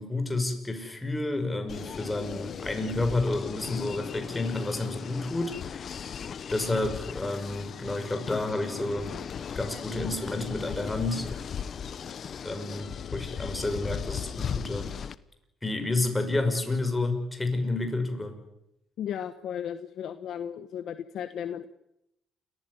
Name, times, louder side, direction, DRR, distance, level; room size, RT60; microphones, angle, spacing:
voice 1, 0.0-9.1 9.5-11.3 12.4-14.9 15.6-18.4, left 2 dB, 15° left, 6 dB, 5.7 m, -30 dB
sound 1, 1.7-15.1, left 7 dB, 55° left, 1.0 m, -37 dB
voice 2, 19.0-21.7, left 9 dB, 70° left, 10 dB, 1.1 m, -35 dB
29.0 x 15.0 x 9.6 m, 0.84 s
cardioid pair, 90°, 0 cm